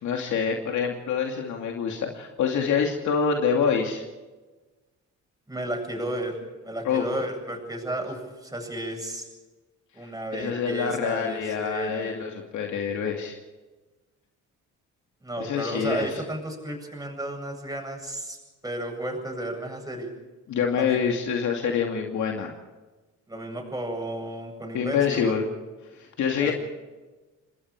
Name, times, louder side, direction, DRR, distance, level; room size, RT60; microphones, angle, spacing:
voice 1, 0.0-4.0 6.8-7.0 10.3-13.4 15.4-16.2 20.5-22.5 24.7-25.5 25.9-26.5, left 6 dB, 75° left, 2 dB, 2.6 m, -26 dB
voice 2, 5.5-9.3 9.9-12.2 15.2-18.4 18.6-20.1 20.7-21.0 23.3-25.4 26.4-26.5, right 1 dB, 10° right, 2 dB, 8.0 m, -33 dB
28.0 x 20.5 x 4.9 m, 1.2 s
cardioid pair, 90°, 30 cm